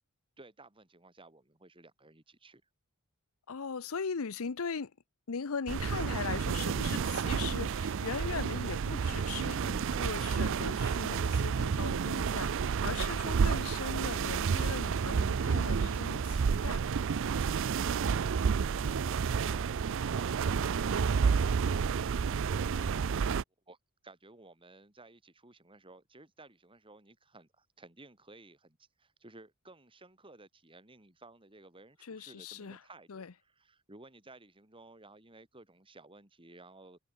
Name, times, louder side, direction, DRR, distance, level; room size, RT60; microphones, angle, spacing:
voice 1, 0.4-2.6 18.1-19.8 23.7-23.8 24.0-37.0, right 2 dB, 25° right, 3.9 m, -55 dB
voice 2, 3.5-4.9 5.3-17.0 32.0-32.8 33.1-33.3, left 5 dB, 70° left, 0.7 m, -39 dB
sound 1, 5.7-23.4, right 6 dB, 60° right, 0.4 m, -30 dB
head